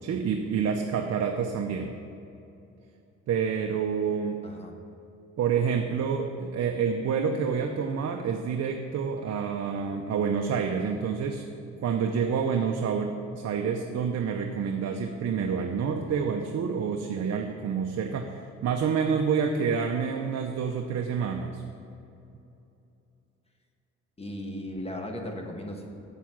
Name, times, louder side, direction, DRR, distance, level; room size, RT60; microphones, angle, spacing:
voice 1, 0.0-1.9 3.3-4.4 5.4-11.4 11.8-21.6, right 6 dB, 55° right, 4 dB, 0.7 m, -28 dB
voice 2, 4.4-4.7 24.2-26.0, left 1 dB, 20° left, 2 dB, 1.3 m, -36 dB
7.3 x 6.9 x 6.0 m, 2.8 s
cardioid pair, 90°, 30 cm